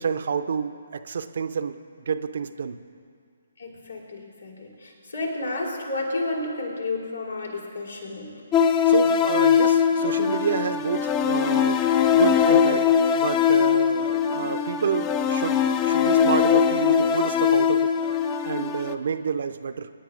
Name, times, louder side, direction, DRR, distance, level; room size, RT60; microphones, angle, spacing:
voice 1, 0.0-2.8 8.8-11.8 12.1-17.9 18.4-19.9, right 6 dB, 50° right, 11 dB, 0.5 m, -29 dB
voice 2, 3.6-8.5 13.9-14.3, left 2 dB, 75° left, -2 dB, 3.3 m, -32 dB
sound 1, 8.5-18.9, left 7 dB, 20° left, 0.4 m, -21 dB
24.5 x 10.0 x 2.5 m, 2.3 s
figure-of-eight pair, 135°, 0 cm